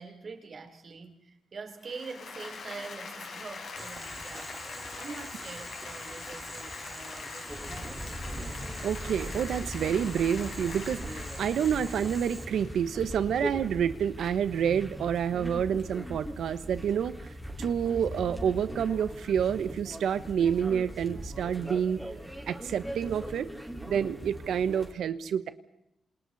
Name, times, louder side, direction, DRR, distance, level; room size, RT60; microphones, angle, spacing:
voice 1, 0.0-8.1, right 4 dB, 50° right, 5 dB, 3.6 m, -44 dB
Applause, 1.8-13.5, left 4 dB, 70° left, 5.6 m, -43 dB
Boiling, 3.8-12.4, right 2 dB, 20° right, 2.1 m, -45 dB
sound 1, 7.5-24.9, equal, ahead, 4.6 m, -40 dB
voice 2, 8.8-17.2 17.6-22.0 22.5-23.5 23.8-25.5, right 8 dB, 85° right, 12 dB, 1.2 m, -28 dB
28.0 x 27.5 x 4.2 m, 0.80 s
cardioid pair, 100°, 0 cm